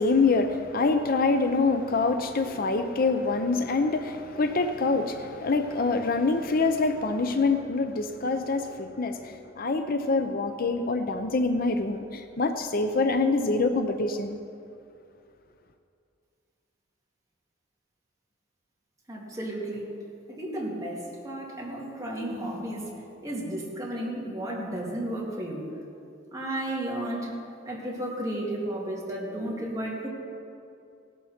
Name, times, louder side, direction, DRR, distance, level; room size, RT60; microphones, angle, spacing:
voice 1, 0.0-14.4, left 3 dB, 50° left, 8 dB, 0.6 m, -25 dB
voice 2, 19.1-20.0 20.3-25.6 26.3-27.4 27.6-30.1, right 1 dB, 20° right, -4 dB, 2.5 m, -33 dB
17.5 x 12.0 x 4.4 m, 2.5 s
head